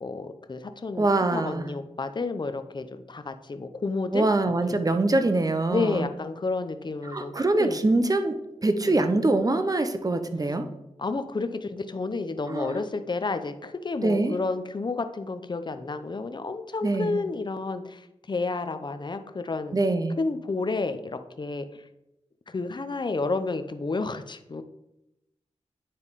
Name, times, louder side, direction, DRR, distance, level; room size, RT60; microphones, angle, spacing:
voice 1, 0.0-4.8 5.7-7.3 7.6-7.8 8.8-8.9 11.0-19.8 20.2-21.8 22.5-24.6, left 3 dB, 40° left, 9 dB, 0.7 m, -31 dB
voice 2, 1.0-1.7 4.1-6.1 7.1-8.4 8.6-10.6 12.5-12.8 14.0-14.4 16.8-17.2 19.7-20.2, right 2 dB, 30° right, 8 dB, 0.9 m, -24 dB
9.8 x 3.5 x 4.1 m, 0.87 s
cardioid pair, 45°, 12 cm